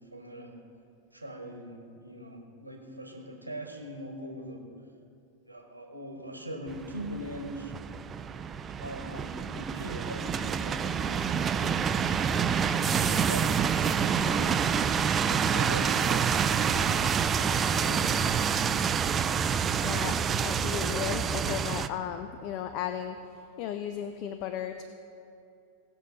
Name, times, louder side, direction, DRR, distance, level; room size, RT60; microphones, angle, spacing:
voice 1, 0.1-0.6 1.1-4.6 5.5-7.7 8.8-11.3 12.2-14.7 15.2-16.3 16.7-18.3, equal, 85° right, 2 dB, 1.4 m, -41 dB
sound 1, 6.7-21.9, right 7 dB, 25° right, 0.4 m, -27 dB
voice 2, 19.8-20.1 20.4-23.2 23.6-24.8, left 10 dB, 40° left, 8 dB, 0.5 m, -35 dB
18.5 x 6.5 x 4.1 m, 2.5 s
figure-of-eight pair, 90°, 0 cm